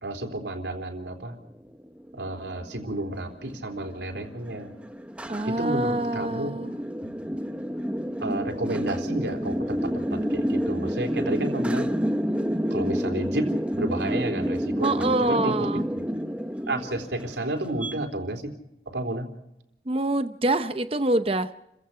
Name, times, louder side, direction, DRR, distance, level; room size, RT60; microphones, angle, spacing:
voice 1, 0.0-1.4 2.1-4.7 5.5-6.5 7.0-7.2 8.2-11.9 12.7-15.7 16.7-18.6 18.9-19.3, right 1 dB, 80° right, 4 dB, 3.6 m, -31 dB
sound 1, 1.6-17.9, equal, 5° right, 0.9 m, -29 dB
voice 2, 5.3-6.7 14.8-15.8 19.9-21.5, right 2 dB, 30° right, 10 dB, 0.8 m, -25 dB
30.0 x 16.0 x 5.7 m, 0.86 s
head